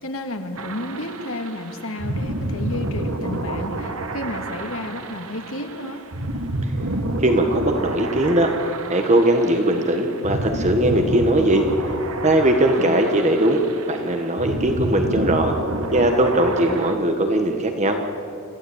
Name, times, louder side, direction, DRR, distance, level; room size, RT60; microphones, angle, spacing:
voice 1, 0.0-6.1 12.8-13.0, left 1 dB, 65° left, 5 dB, 2.2 m, -31 dB
sound 1, 0.6-16.9, right 2 dB, 70° right, 1.7 m, -29 dB
voice 2, 7.2-8.5 8.9-11.7 12.2-15.6 15.9-18.0, right 1 dB, 30° right, 5 dB, 1.5 m, -19 dB
26.5 x 15.5 x 8.7 m, 2.4 s
head